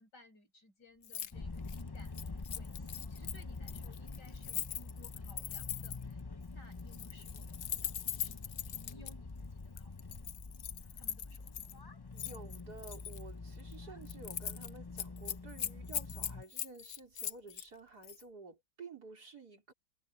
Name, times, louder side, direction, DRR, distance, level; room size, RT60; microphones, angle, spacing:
voice 1, 0.0-6.3 6.5-8.4 8.6-10.1 11.0-11.5, left 2 dB, 85° left, 7.1 m, -61 dB
Keys jangling, 1.0-1.3 1.6-6.1 6.8-9.1 9.8-11.7 12.2-13.2 13.6-13.8 14.1-14.7 15.0-17.7 18.0-18.2, left 10 dB, 60° left, 0.8 m, -41 dB
sound 1, 1.3-16.4, left 3 dB, 40° left, 0.3 m, -46 dB
voice 2, 12.1-19.7, right 3 dB, 65° right, 4.4 m, -52 dB
omnidirectional pair, 1.8 m